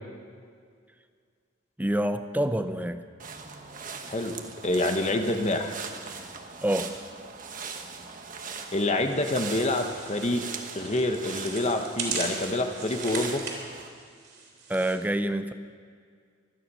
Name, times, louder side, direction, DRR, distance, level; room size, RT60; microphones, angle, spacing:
voice 1, 1.8-3.0 6.6-6.9 14.7-15.5, right 1 dB, 10° right, 10 dB, 0.6 m, -27 dB
sound 1, 3.2-13.9, right 5 dB, 40° right, 1.2 m, -40 dB
voice 2, 4.6-5.8 8.7-10.5 10.7-13.4, left 2 dB, 35° left, 6 dB, 1.1 m, -27 dB
sound 2, 8.6-15.0, right 4 dB, 55° right, 3.5 m, -39 dB
24.5 x 10.0 x 5.5 m, 2.1 s
head